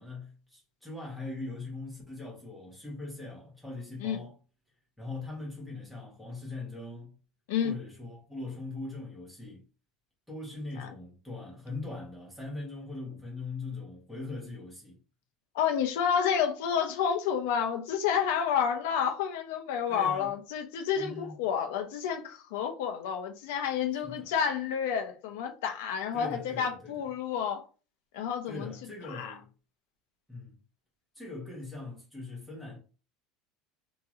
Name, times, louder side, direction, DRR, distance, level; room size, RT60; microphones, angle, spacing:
voice 1, 0.0-4.4 5.0-7.2 7.6-9.6 10.3-15.0 19.9-20.3 20.9-21.3 24.0-24.3 26.1-26.9 28.4-29.5 30.3-30.6 31.1-32.8, left 3 dB, 5° left, 1.1 m, -41 dB
voice 2, 15.5-27.6 28.1-28.7 29.0-29.3, left 8 dB, 85° left, 0.6 m, -30 dB
2.9 x 2.8 x 2.4 m
cardioid pair, 160°, 0 cm